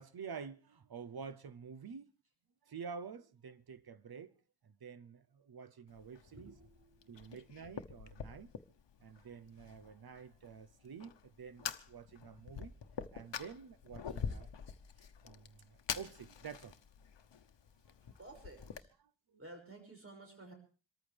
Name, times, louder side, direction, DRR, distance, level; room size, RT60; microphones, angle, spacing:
voice 1, 0.0-2.1 2.7-4.3 4.6-6.5 7.1-8.5 9.0-11.1 11.4-12.7 13.1-14.5 15.2-15.5 15.9-16.7, right 6 dB, 60° right, 0.8 m, -49 dB
Fire, 5.9-18.8, left 7 dB, 80° left, 1.0 m, -46 dB
voice 2, 6.3-8.7 9.1-9.2 18.0-18.9 19.4-20.5, right 2 dB, 30° right, 5.7 m, -56 dB
26.5 x 14.0 x 3.4 m
wide cardioid pair, 115°, 42 cm